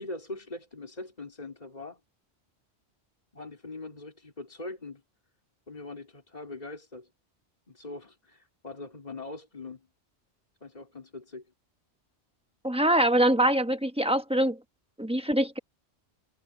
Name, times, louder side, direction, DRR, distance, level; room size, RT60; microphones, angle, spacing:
voice 1, 0.0-2.0 3.3-5.0 5.7-7.1 7.7-9.9 10.6-11.4, left 2 dB, 35° left, 3.5 m, -42 dB
voice 2, 12.6-14.6 15.0-15.6, right 1 dB, 5° right, 1.0 m, -24 dB
omnidirectional pair, 1.2 m